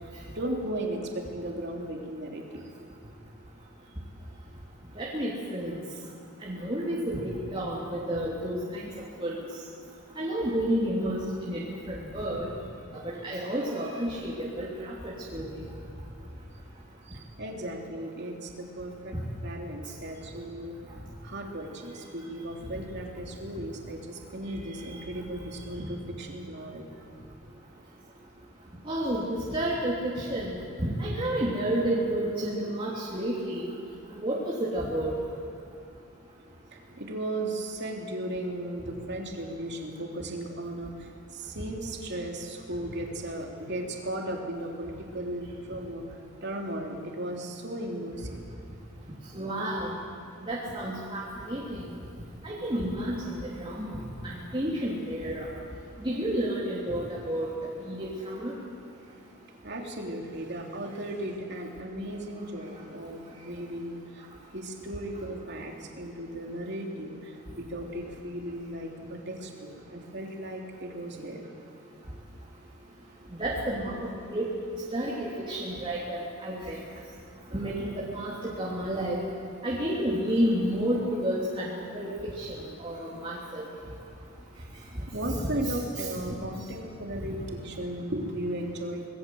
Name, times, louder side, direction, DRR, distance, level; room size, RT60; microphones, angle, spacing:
voice 1, 0.3-2.7 17.1-20.8 21.2-27.1 36.7-48.4 59.6-64.3 64.5-71.5 85.1-89.0, right 1 dB, 50° right, 1 dB, 3.3 m, -36 dB
voice 2, 5.0-5.7 6.4-7.2 7.5-8.8 9.2-9.3 10.2-11.6 11.9-12.5 13.0-15.5 28.8-29.2 29.5-30.5 30.8-33.7 34.2-35.1 49.3-49.9 50.5-51.8 52.4-53.3 53.6-53.9 54.2-55.5 56.0-57.5 57.8-58.5 73.4-73.9 74.3-74.5 74.9-76.8 77.5-79.2 79.6-82.5 82.8-83.6 85.3-85.5, right 1 dB, 25° right, -7 dB, 3.2 m, -30 dB
26.0 x 20.0 x 7.9 m, 2.6 s
head